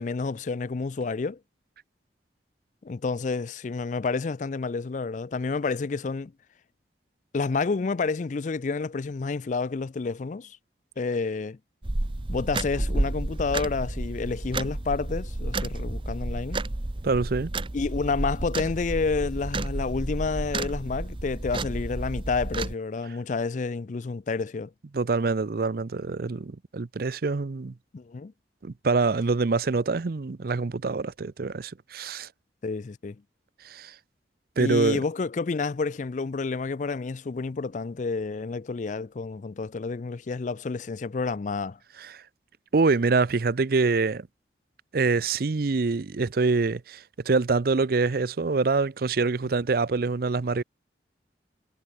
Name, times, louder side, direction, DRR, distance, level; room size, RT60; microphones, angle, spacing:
voice 1, 0.0-1.4 2.8-6.3 7.3-10.6 11.0-11.6 12.3-16.6 17.7-24.7 27.9-28.3 32.6-33.2 34.6-41.8, left 4 dB, 45° left, 0.4 m, -29 dB
sound 1, 11.8-22.7, right 2 dB, 30° right, 0.9 m, -31 dB
voice 2, 17.0-17.5 24.9-27.7 28.6-32.3 33.6-33.9 34.6-35.0 42.0-42.2 42.7-44.3 44.9-50.6, right 4 dB, 55° right, 0.5 m, -25 dB
head